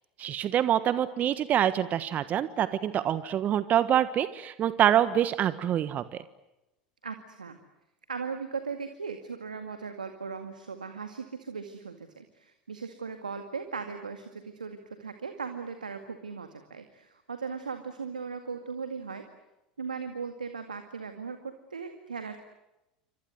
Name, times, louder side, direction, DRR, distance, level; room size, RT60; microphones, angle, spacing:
voice 1, 0.2-6.2, right 10 dB, 40° right, 13 dB, 1.4 m, -26 dB
voice 2, 7.0-7.6 8.1-19.3 19.8-22.4, right 5 dB, 85° right, 7 dB, 2.1 m, -38 dB
28.5 x 25.0 x 8.0 m, 0.95 s
figure-of-eight pair, 80°, 4 cm